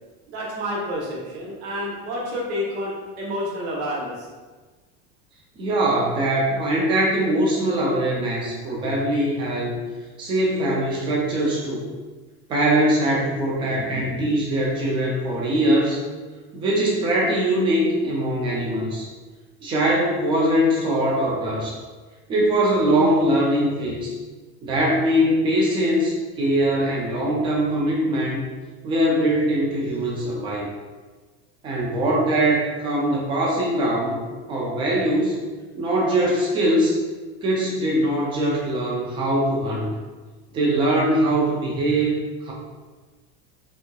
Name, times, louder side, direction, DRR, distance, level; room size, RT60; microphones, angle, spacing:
voice 1, 0.3-4.3, equal, 85° right, -3 dB, 1.0 m, -29 dB
voice 2, 5.6-9.8 10.2-11.8 12.5-16.0 16.5-19.1 19.6-21.8 22.3-24.2 24.6-28.4 28.8-30.7 31.6-34.2 34.5-35.4 35.8-37.0 37.4-39.9 40.5-42.5, right 1 dB, 15° right, -4 dB, 0.3 m, -22 dB
3.5 x 2.8 x 2.2 m, 1.3 s
cardioid pair, 180°, 32 cm